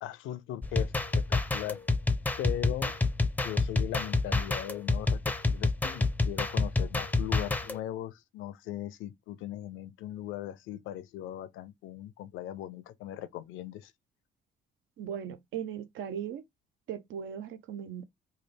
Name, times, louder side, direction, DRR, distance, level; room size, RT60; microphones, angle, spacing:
voice 1, 0.0-1.9 2.4-2.9 3.4-13.9, left 12 dB, 90° left, 0.5 m, -39 dB
sound 1, 0.6-7.8, left 3 dB, 10° left, 0.4 m, -28 dB
voice 2, 15.0-16.4 16.9-18.0, right 8 dB, 80° right, 0.6 m, -38 dB
3.2 x 2.3 x 3.2 m
cardioid pair, 90°, 20 cm